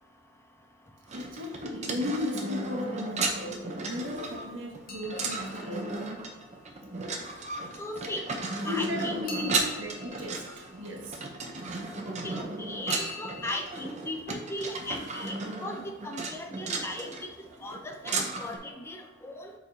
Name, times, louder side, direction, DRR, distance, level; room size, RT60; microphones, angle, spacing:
sound 1, 1.1-18.6, right 3 dB, 35° right, 0.7 m, -35 dB
voice 1, 1.1-6.0 8.6-11.2, left 2 dB, 70° right, -1 dB, 1.3 m, -35 dB
sound 2, 4.9-6.9 9.3-11.6 12.9-13.6, left 2 dB, 50° left, 0.7 m, -44 dB
voice 2, 7.8-8.2 8.6-9.2 12.2-17.3 17.6-19.5, left 1 dB, 15° left, 4 dB, 0.5 m, -37 dB
8.5 x 4.6 x 2.8 m, 1.2 s
head